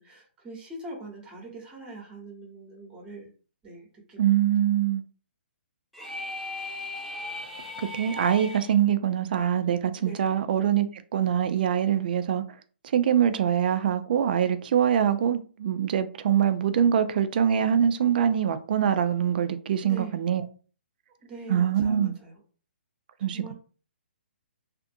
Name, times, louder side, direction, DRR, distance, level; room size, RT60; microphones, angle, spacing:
voice 1, 0.0-3.3 3.6-4.4 10.0-10.2 19.8-20.1 21.2-22.4 23.3-23.5, right 2 dB, 15° right, 0.9 m, -42 dB
voice 2, 4.2-5.0 7.8-10.9 11.1-12.4 12.9-20.4 21.5-22.1 23.2-23.5, right 9 dB, 50° right, 0.4 m, -24 dB
sound 1, 5.9-8.7, left 2 dB, ahead, 0.5 m, -37 dB
2.5 x 2.5 x 2.6 m
hypercardioid pair, 145°, 6 cm